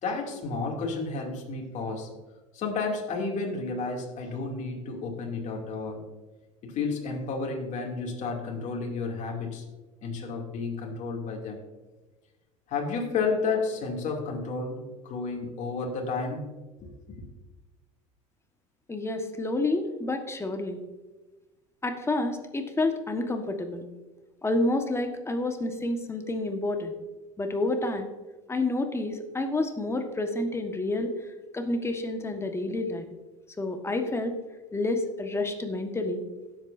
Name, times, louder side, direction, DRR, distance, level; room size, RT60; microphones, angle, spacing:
voice 1, 0.0-2.1 2.5-6.0 6.6-9.6 10.0-11.6 12.7-16.4 16.8-17.2, left 4 dB, 45° left, 0 dB, 2.8 m, -31 dB
voice 2, 18.9-20.8 21.8-23.8 24.4-26.9 27.4-28.1 28.5-31.1 31.5-33.0 33.6-34.4 34.7-36.2, left 2 dB, 15° left, 5 dB, 1.5 m, -29 dB
16.5 x 8.0 x 2.7 m, 1.2 s
hypercardioid pair, 80°, 17 cm